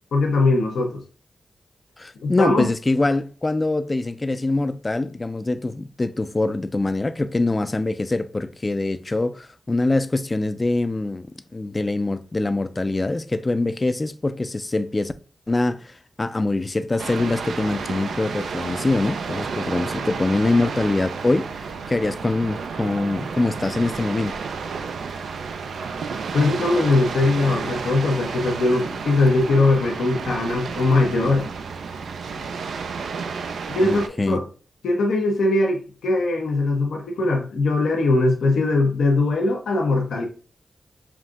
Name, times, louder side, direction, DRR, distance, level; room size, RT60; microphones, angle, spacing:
voice 1, 0.1-1.0 2.2-2.7 26.3-31.5 33.7-34.4 34.8-40.3, left 2 dB, 85° left, 0.7 m, -20 dB
voice 2, 2.0-11.3 11.5-15.1 15.5-21.5 21.9-24.4 33.8-34.4, left 2 dB, 35° left, 0.4 m, -24 dB
sound 1, 17.0-34.1, right 5 dB, 85° right, 0.3 m, -31 dB
5.9 x 2.6 x 2.3 m
cardioid pair, 40°, 0 cm